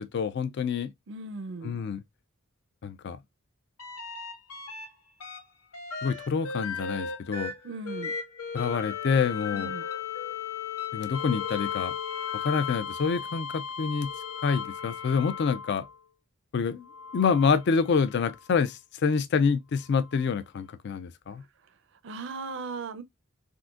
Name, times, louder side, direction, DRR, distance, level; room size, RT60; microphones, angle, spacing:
voice 1, 0.0-0.9 1.6-2.0 2.8-3.2 6.0-7.5 8.5-9.7 10.9-11.9 12.3-14.1 14.4-15.8 16.5-16.9 17.1-21.4, left 5 dB, 50° left, 0.3 m, -27 dB
voice 2, 1.1-1.8 7.6-8.1 9.5-9.8 22.0-23.0, right 3 dB, 55° right, 0.5 m, -37 dB
sound 1, 3.8-4.9 5.2-16.0 16.8-18.4 20.1-20.2, left 7 dB, 90° left, 1.0 m, -36 dB
3.7 x 2.5 x 2.4 m
head